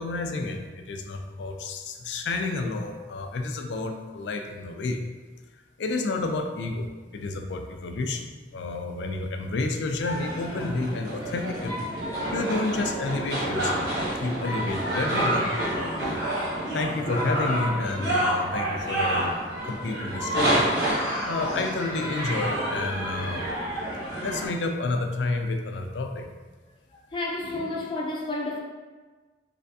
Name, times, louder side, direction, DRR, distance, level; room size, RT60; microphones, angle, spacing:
voice 1, 0.0-5.0 5.8-8.3 8.5-11.9 12.3-13.9 14.2-16.2 16.7-19.3 19.6-20.7 21.3-23.6 24.2-26.3, left 3 dB, 90° left, 5 dB, 0.4 m, -30 dB
sound 1, 10.0-24.5, right 1 dB, 65° right, 1.1 m, -28 dB
voice 2, 26.9-28.6, left 2 dB, 30° left, -3 dB, 0.5 m, -31 dB
3.4 x 3.2 x 2.7 m, 1.3 s
head